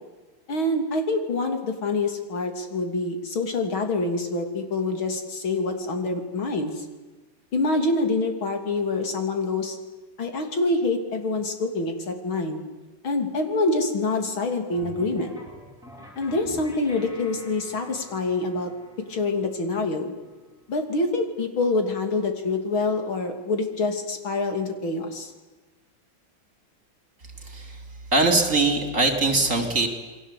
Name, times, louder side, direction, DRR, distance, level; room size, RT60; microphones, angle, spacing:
voice 1, 0.5-6.8 7.5-9.8 10.2-12.6 13.0-15.3 16.2-18.7 19.1-20.1 20.7-25.3, left 3 dB, 85° left, 6 dB, 3.8 m, -26 dB
sound 1, 14.7-21.4, equal, ahead, 6.3 m, -47 dB
voice 2, 27.4-27.8 28.1-29.9, right 3 dB, 40° right, 5 dB, 3.8 m, -22 dB
28.5 x 22.0 x 8.5 m, 1.3 s
omnidirectional pair, 2.2 m